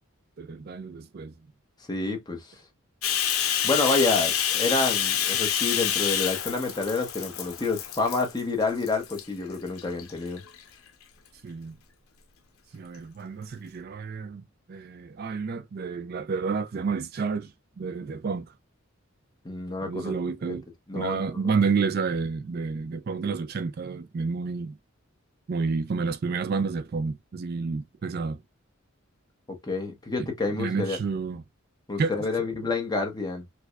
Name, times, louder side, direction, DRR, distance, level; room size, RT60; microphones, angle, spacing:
voice 1, 0.4-1.3 11.4-11.8 12.7-14.4 14.7-17.5 17.8-18.5 19.8-20.6 20.9-24.8 25.5-28.4 30.2-30.3 30.6-31.4 32.0-32.1, right 5 dB, 45° right, 0.4 m, -30 dB
voice 2, 1.9-2.5 3.6-10.4 19.4-20.1 20.5-20.6 20.9-21.5 29.5-31.0 31.9-33.4, left 3 dB, 20° left, 0.9 m, -28 dB
Bathtub (filling or washing), 3.0-8.4 8.8-9.2 9.8-10.6, left 9 dB, 85° left, 0.7 m, -27 dB
4.6 x 2.2 x 2.3 m
head